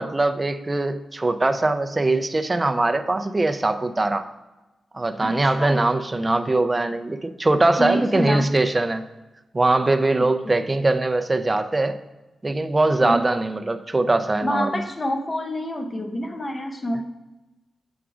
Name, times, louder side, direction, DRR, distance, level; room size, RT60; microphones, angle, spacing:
voice 1, 0.0-4.3 4.9-9.1 9.5-12.0 12.4-14.8, right 2 dB, 20° right, 8 dB, 0.4 m, -21 dB
voice 2, 5.2-5.8 7.8-8.5 10.4-10.5 13.0-13.2 14.4-17.0, left 1 dB, 25° left, 6 dB, 0.6 m, -27 dB
7.1 x 3.7 x 4.8 m, 1.1 s
wide cardioid pair, 120°, 0 cm